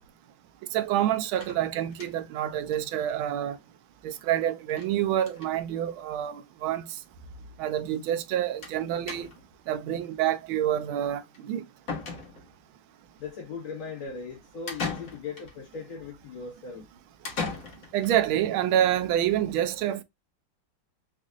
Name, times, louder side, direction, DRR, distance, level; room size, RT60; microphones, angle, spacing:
voice 1, 0.7-3.6 4.0-6.8 7.6-9.3 9.7-11.6 17.9-20.0, right 11 dB, 85° right, 1.4 m, -27 dB
sound 1, 1.4-2.4 2.7-2.8 3.1-3.2 3.4-3.5 4.7-4.9 5.2-5.5 6.4-6.5 6.8-6.9 8.6-8.8 9.1-9.6 11.3-11.4 11.9-12.7 14.7-15.5 17.2-18.1, left 4 dB, 50° left, 1.4 m, -37 dB
voice 2, 13.2-16.9, left 5 dB, 85° left, 2.4 m, -38 dB
5.2 x 2.4 x 2.5 m
omnidirectional pair, 2.2 m